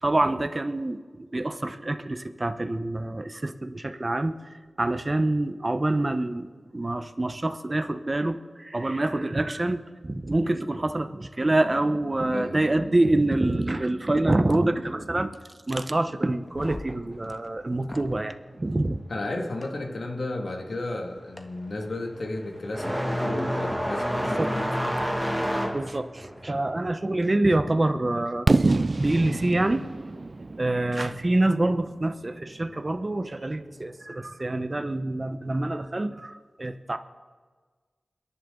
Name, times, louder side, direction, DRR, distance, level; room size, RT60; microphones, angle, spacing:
voice 1, 0.0-19.0 24.4-24.5 25.7-28.7 29.0-30.1 30.6-37.0, right 2 dB, 40° right, 9 dB, 1.0 m, -26 dB
voice 2, 12.3-13.1 19.1-25.0, left 2 dB, 80° left, 1 dB, 2.3 m, -34 dB
sound 1, 16.4-18.2 19.6-19.7 21.4-21.5 23.4-23.5 24.9-25.0, left 1 dB, 40° left, 1.6 m, -41 dB
sound 2, 20.1-20.5 20.8-29.1 29.4-30.4 31.4-31.5 32.3-32.4 34.2-34.3, equal, ahead, 2.3 m, -30 dB
Fireworks, 28.5-32.3, right 3 dB, 55° right, 0.4 m, -26 dB
30.0 x 11.0 x 3.9 m, 1.5 s
cardioid pair, 50°, 0 cm